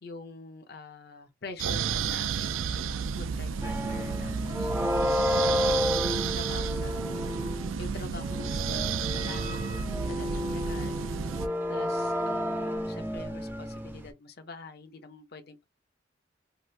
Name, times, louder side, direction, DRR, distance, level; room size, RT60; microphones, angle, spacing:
voice 1, 0.0-4.7 5.3-6.0 6.3-7.2 7.8-11.0 11.7-15.6, left 3 dB, 55° left, 0.6 m, -45 dB
sound 1, 1.6-11.5, right 6 dB, 90° right, 0.4 m, -32 dB
sound 2, 3.6-7.8 8.2-14.1, left 1 dB, 10° right, 0.5 m, -31 dB
2.8 x 2.4 x 3.2 m
head